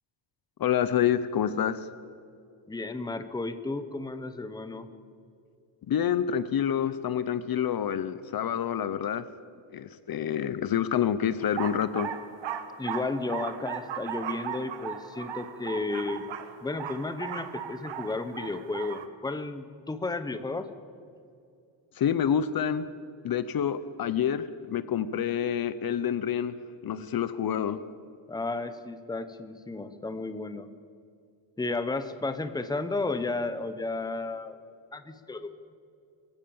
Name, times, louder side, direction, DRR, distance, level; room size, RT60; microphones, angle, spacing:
voice 1, 0.6-1.9 5.9-9.2 9.7-12.1 21.9-22.9 23.2-26.6 26.8-27.8, left 9 dB, 50° left, 14 dB, 0.8 m, -27 dB
voice 2, 2.7-4.9 12.8-16.2 16.6-20.7 28.3-30.7 31.6-34.6 34.9-35.5, left 3 dB, 10° left, 10 dB, 1.0 m, -33 dB
sound 1, 11.4-19.1, right 9 dB, 75° right, 1.7 m, -37 dB
25.0 x 15.5 x 7.2 m, 2.5 s
wide cardioid pair, 160°, 45 cm